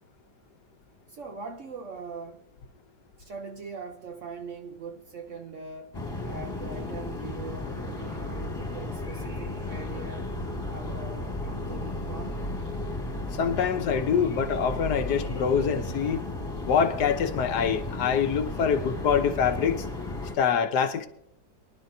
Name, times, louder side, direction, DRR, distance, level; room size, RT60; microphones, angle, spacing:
voice 1, 1.1-2.4 3.2-10.4 10.7-12.4, right 4 dB, 55° right, 1.0 m, -41 dB
sound 1, 5.9-20.4, left 2 dB, 15° left, 1.9 m, -34 dB
voice 2, 13.3-16.3 16.6-19.9 20.3-21.1, left 7 dB, 70° left, 1.4 m, -25 dB
23.5 x 11.0 x 2.7 m
omnidirectional pair, 1.9 m